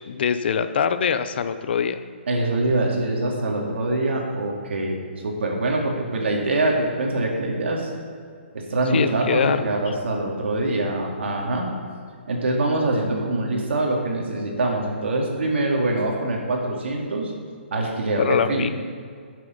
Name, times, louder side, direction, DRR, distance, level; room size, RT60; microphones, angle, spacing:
voice 1, 0.0-2.0 8.9-9.9 18.2-18.7, left 7 dB, 60° left, 11 dB, 0.6 m, -23 dB
voice 2, 2.3-5.0 5.2-7.9 8.5-11.7 12.3-17.3 17.7-18.7, right 2 dB, 75° right, 0 dB, 2.5 m, -24 dB
10.0 x 7.5 x 5.3 m, 2.2 s
hypercardioid pair, 155°, 6 cm